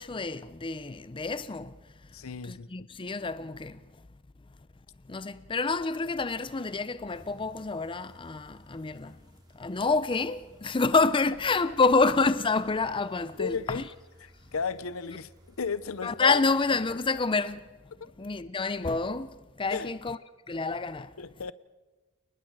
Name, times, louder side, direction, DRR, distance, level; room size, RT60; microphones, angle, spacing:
voice 1, 0.0-1.7 2.4-3.8 5.1-9.2 9.6-13.8 16.0-17.7 18.2-20.2 20.5-21.1, left 4 dB, 25° left, 0.5 m, -28 dB
voice 2, 2.1-2.9 13.4-13.9 14.2-15.3 15.6-16.4 18.0-18.1 19.7-19.9 21.2-21.5, left 5 dB, 85° left, 0.7 m, -34 dB
sound 1, 7.1-16.9, equal, 20° right, 3.1 m, -59 dB
29.5 x 20.0 x 4.8 m
head